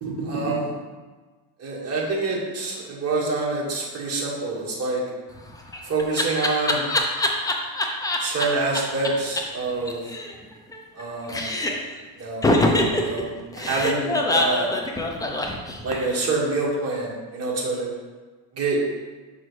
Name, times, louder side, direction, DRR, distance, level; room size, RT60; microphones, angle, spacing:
voice 1, 0.0-0.7 1.6-5.0 5.8-6.9 8.2-10.0 10.9-11.5 12.2-12.5 12.9-13.3 13.5-14.7 15.8-17.9 18.5-18.8, right 3 dB, 30° right, -5 dB, 1.7 m, -26 dB
Laughter, 5.4-8.5 8.7-8.8 9.0-9.1 9.4-9.5 9.7-11.0 11.3-11.9 12.4-16.2, left 1 dB, 10° left, 0.3 m, -24 dB
5.9 x 5.2 x 3.1 m, 1.3 s
cardioid pair, 135°, 45 cm